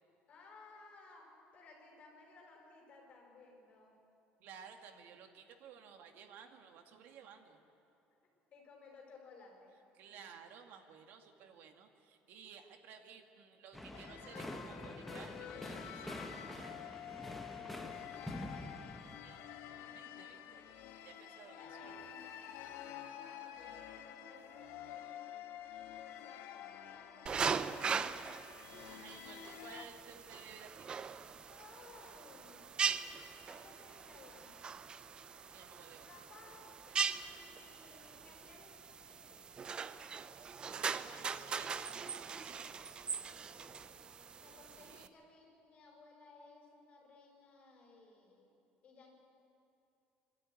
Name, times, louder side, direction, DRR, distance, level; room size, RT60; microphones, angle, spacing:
voice 1, 0.3-4.0 7.5-7.6 8.5-9.8 21.1-28.4 31.5-32.7 33.5-34.5 36.1-39.7 43.1-43.9 44.3-48.5 48.8-49.1, left 3 dB, 30° left, -2 dB, 5.7 m, -60 dB
voice 2, 4.4-7.6 10.0-16.2 19.2-19.5 19.9-20.6 21.0-22.0 28.9-30.9 35.5-36.1 36.9-37.3 40.6-42.7 44.8-45.1, right 7 dB, 60° right, 5 dB, 2.0 m, -56 dB
sound 1, 13.7-19.2, left 1 dB, 5° left, 1.1 m, -46 dB
sound 2, 13.9-29.9, left 10 dB, 75° left, 1.4 m, -49 dB
sound 3, 27.3-45.1, right 6 dB, 25° right, 0.6 m, -41 dB
25.0 x 13.0 x 9.8 m, 2.7 s
cardioid pair, 170°, 4 cm